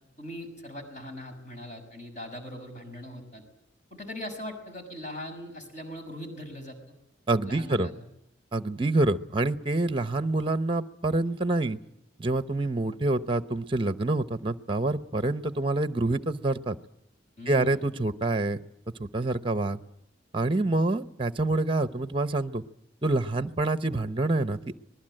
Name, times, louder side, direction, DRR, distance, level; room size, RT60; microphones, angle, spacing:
voice 1, 0.2-3.4 3.9-6.8 7.5-8.0 17.4-17.9, left 1 dB, 40° left, 5 dB, 6.0 m, -40 dB
voice 2, 7.3-7.9 8.5-11.8 12.2-16.8 17.5-18.6 19.0-19.8 20.3-22.6 23.0-24.8, right 2 dB, 25° right, 11 dB, 0.8 m, -27 dB
25.5 x 20.0 x 7.7 m, 0.80 s
head